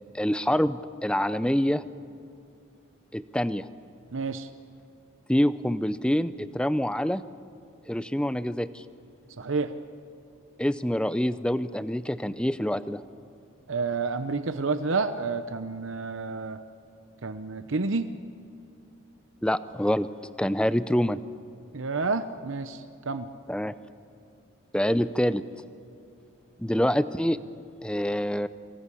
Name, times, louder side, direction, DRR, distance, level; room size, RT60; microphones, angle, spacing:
voice 1, 0.1-1.8 3.1-3.7 5.3-7.2 7.9-8.8 10.6-13.0 19.4-20.1 20.4-21.2 23.5-23.7 24.7-25.4 26.6-27.4 27.8-28.5, equal, 5° left, 14 dB, 0.5 m, -26 dB
voice 2, 4.1-4.5 9.4-9.7 13.7-16.6 17.2-18.1 21.7-23.3, right 4 dB, 70° right, 10 dB, 0.8 m, -29 dB
24.0 x 19.0 x 8.5 m, 2.6 s
head